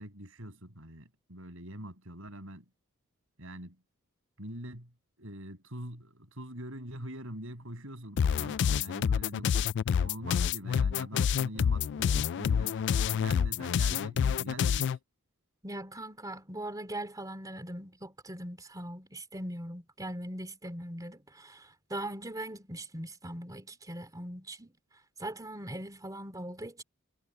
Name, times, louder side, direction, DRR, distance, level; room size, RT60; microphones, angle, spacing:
voice 1, 0.0-2.6 3.4-3.8 4.4-4.9 5.2-9.6 10.0-15.0, right 1 dB, 65° right, 6.8 m, -44 dB
sound 1, 8.2-15.0, left 7 dB, 55° left, 0.3 m, -28 dB
voice 2, 15.6-24.7 25.2-26.8, right 1 dB, 15° right, 3.1 m, -40 dB
head